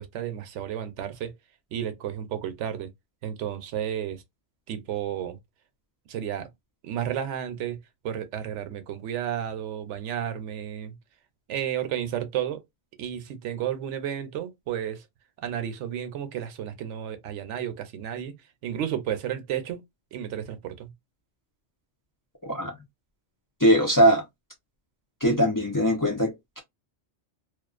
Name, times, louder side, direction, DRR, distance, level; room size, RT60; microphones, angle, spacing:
voice 1, 0.0-1.3 1.7-2.9 3.2-4.2 4.7-5.4 6.1-6.5 6.8-7.8 8.0-11.0 11.5-12.6 13.0-15.0 15.4-18.3 18.6-19.8 20.1-20.9, right 10 dB, 90° right, 0.9 m, -32 dB
voice 2, 22.4-22.8 23.6-24.2 25.2-26.6, equal, 25° left, 0.5 m, -21 dB
2.4 x 2.3 x 2.4 m
omnidirectional pair, 1.2 m